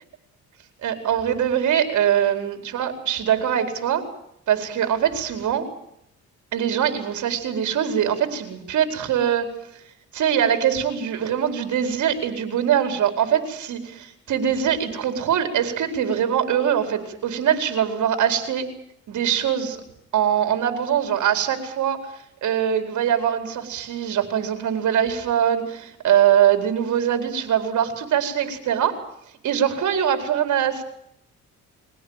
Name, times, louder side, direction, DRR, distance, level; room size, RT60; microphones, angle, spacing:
voice 1, 0.8-4.0 4.5-5.7 6.5-9.5 10.1-18.7 19.1-19.8 20.1-29.0 29.4-30.8, right 9 dB, 70° right, 6 dB, 4.7 m, -22 dB
23.5 x 17.5 x 9.1 m, 0.77 s
cardioid pair, 90°, 30 cm